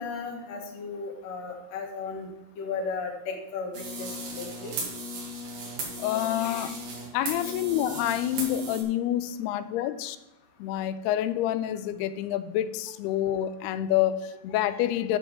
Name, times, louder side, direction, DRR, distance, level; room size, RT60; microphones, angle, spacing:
voice 1, 0.0-2.3 2.6-4.8 7.4-7.5, left 4 dB, 55° left, 2 dB, 2.2 m, -35 dB
sound 1, 3.7-8.8, right 1 dB, 85° right, 4.4 m, -36 dB
voice 2, 6.0-6.8 7.1-10.2 10.6-15.2, left 12 dB, 90° left, 13 dB, 2.6 m, -28 dB
10.0 x 4.7 x 7.3 m, 0.96 s
omnidirectional pair, 4.6 m